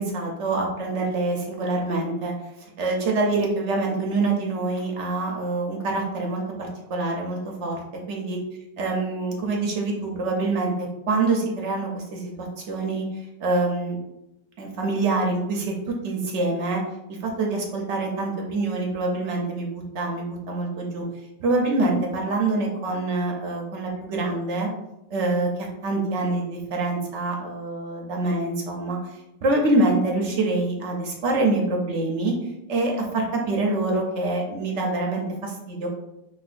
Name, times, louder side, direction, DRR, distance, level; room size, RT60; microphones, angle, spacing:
voice 1, 0.0-2.3 2.8-8.4 8.8-13.1 13.4-14.0 14.6-16.8 17.1-21.0 21.4-24.7 25.1-29.1 29.4-32.3 32.7-35.9, right 2 dB, 60° right, 0 dB, 0.7 m, -25 dB
5.2 x 2.3 x 2.4 m, 0.88 s
omnidirectional pair, 1.8 m